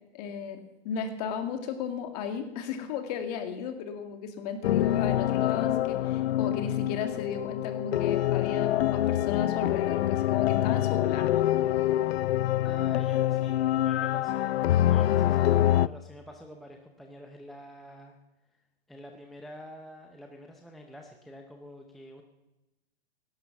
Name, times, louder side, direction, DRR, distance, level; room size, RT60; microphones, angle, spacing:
voice 1, 0.1-0.6 0.8-11.4, left 7 dB, 40° left, 6 dB, 2.4 m, -35 dB
sound 1, 4.6-15.9, left 13 dB, 75° left, 0.5 m, -25 dB
voice 2, 12.6-18.2 18.5-18.6 18.9-22.2, equal, ahead, 2 dB, 0.6 m, -47 dB
17.0 x 11.5 x 7.0 m, 0.98 s
hypercardioid pair, 160°, 32 cm